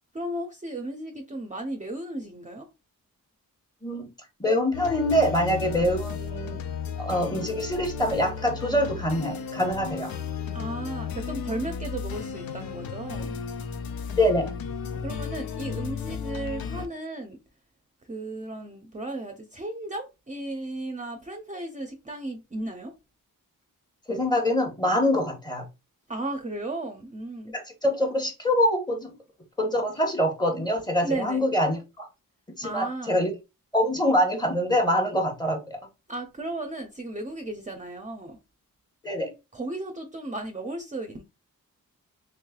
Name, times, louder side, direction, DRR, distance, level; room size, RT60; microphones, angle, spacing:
voice 1, 0.1-2.7 10.5-13.3 15.0-17.4 18.1-22.9 26.1-27.5 31.0-31.4 32.6-33.2 36.1-38.4 39.5-41.2, right 2 dB, 20° right, 0.5 m, -35 dB
voice 2, 4.4-6.6 7.0-10.1 14.2-14.5 24.1-25.6 27.5-29.1 29.6-32.1 32.5-33.3 33.7-35.8 39.0-39.3, equal, 10° left, 1.0 m, -25 dB
sound 1, 4.7-16.9, left 6 dB, 90° left, 0.5 m, -34 dB
3.2 x 3.1 x 2.3 m
cardioid pair, 70°, 34 cm